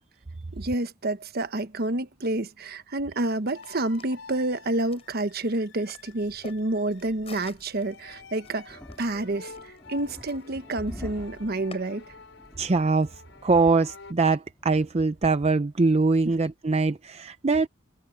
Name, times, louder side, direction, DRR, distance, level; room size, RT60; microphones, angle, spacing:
voice 1, 0.5-12.0, right 2 dB, 55° right, 1.1 m, -29 dB
sound 1, 3.3-11.8, left 4 dB, 30° left, 7.0 m, -52 dB
sound 2, 3.5-14.1, left 4 dB, 75° left, 5.1 m, -49 dB
sound 3, 7.6-15.1, equal, 10° left, 2.5 m, -47 dB
voice 2, 12.6-13.1 13.4-17.7, right 3 dB, 35° right, 0.6 m, -22 dB
head